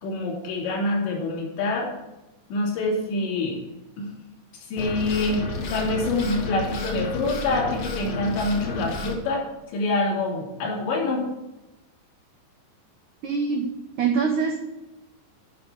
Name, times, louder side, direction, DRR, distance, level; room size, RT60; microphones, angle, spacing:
voice 1, 0.0-1.9 2.5-3.6 4.0-4.1 4.7-9.4 9.7-11.2, left 2 dB, 75° left, -3 dB, 5.0 m, -26 dB
sound 1, 4.8-9.2, left 3 dB, 55° left, 1.8 m, -32 dB
voice 2, 13.2-13.7 14.0-14.6, right 5 dB, 80° right, 1 dB, 1.8 m, -23 dB
12.0 x 5.3 x 8.0 m, 0.99 s
omnidirectional pair, 5.2 m